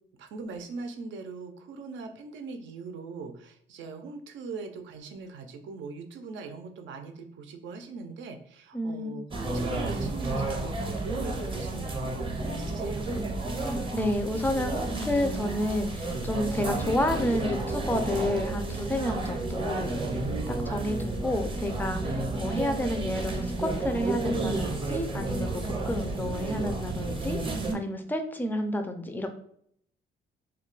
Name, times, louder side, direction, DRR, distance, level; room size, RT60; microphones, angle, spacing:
voice 1, 0.2-12.3 12.5-13.1, right 4 dB, 75° right, 6 dB, 0.5 m, -41 dB
voice 2, 8.7-9.2 13.5-29.3, left 1 dB, 10° left, 6 dB, 0.4 m, -31 dB
sound 1, 9.3-27.8, right 2 dB, 25° right, 0.6 m, -31 dB
2.3 x 2.1 x 3.8 m, 0.66 s
cardioid pair, 90°, 20 cm